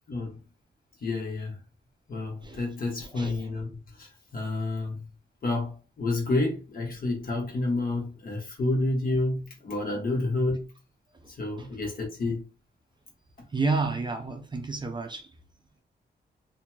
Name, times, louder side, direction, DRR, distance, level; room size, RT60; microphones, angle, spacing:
voice 1, 0.1-0.4 1.0-1.6 2.1-5.0 5.4-10.7 11.3-12.4, left 2 dB, 50° left, 1.2 m, -29 dB
voice 2, 3.0-3.5 11.6-11.7 13.5-15.3, right 3 dB, 25° right, 0.4 m, -30 dB
2.8 x 2.6 x 2.2 m
cardioid pair, 100°, 18 cm